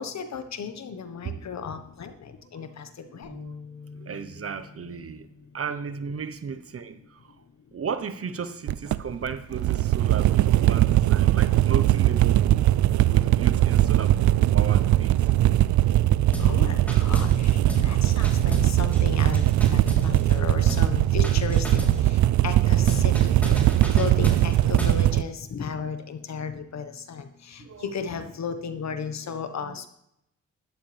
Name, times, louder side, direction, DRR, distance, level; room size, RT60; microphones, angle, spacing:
voice 1, 0.0-3.3 16.4-23.3 23.9-29.9, left 6 dB, 65° left, 1.4 m, -35 dB
sound 1, 3.2-9.5, left 4 dB, 80° left, 5.5 m, -49 dB
voice 2, 3.9-5.3 5.5-7.4 7.7-12.7 13.1-14.2 14.5-15.3 17.5-19.2 20.2-20.7 24.0-24.1 27.6-28.2 29.3-29.8, right 6 dB, 50° right, 1.1 m, -36 dB
sound 2, 8.7-25.2, right 14 dB, 75° right, 0.4 m, -20 dB
sound 3, 16.3-16.6 16.9-17.4 17.7-17.9 18.2-20.4 20.7-20.9 21.2-22.0 22.9-25.0, equal, 5° left, 3.7 m, -32 dB
12.5 x 11.5 x 3.5 m
cardioid pair, 60°, 29 cm